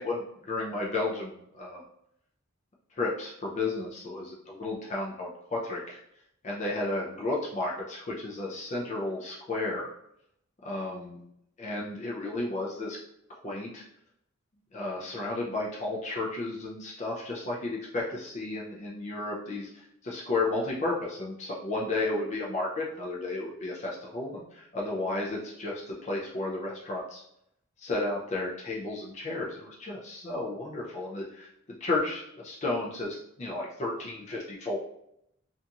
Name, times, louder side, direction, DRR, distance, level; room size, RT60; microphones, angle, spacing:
voice 1, 0.0-1.8 3.0-6.0 6.4-9.9 10.6-11.2 11.6-13.0 13.4-13.8 14.7-27.2 27.8-31.5 31.8-34.8, left 2 dB, 30° left, -3 dB, 0.4 m, -33 dB
2.8 x 2.5 x 2.3 m, 0.76 s
head